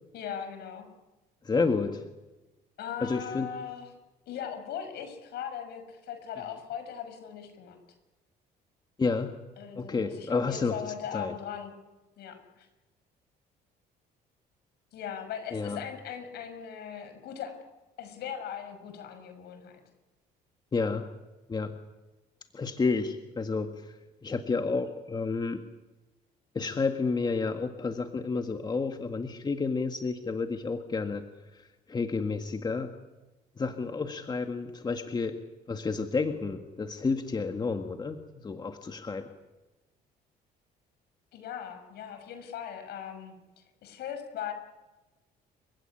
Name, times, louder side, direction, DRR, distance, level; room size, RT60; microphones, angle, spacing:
voice 1, 0.1-0.9 2.8-3.9 4.3-7.8 9.6-11.7 12.2-12.7 14.9-17.6 18.0-19.8 41.3-44.5, left 8 dB, 75° left, 8 dB, 6.2 m, -39 dB
voice 2, 1.4-2.1 3.0-3.5 9.0-9.4 9.8-10.8 11.1-11.3 15.5-15.8 20.7-21.1 21.5-21.8 22.5-23.9 24.2-25.6 26.5-31.2 31.6-33.0 33.6-35.4 35.7-39.3, left 4 dB, 25° left, 6 dB, 1.8 m, -30 dB
29.5 x 16.0 x 9.9 m, 1.1 s
cardioid pair, 110°, 17 cm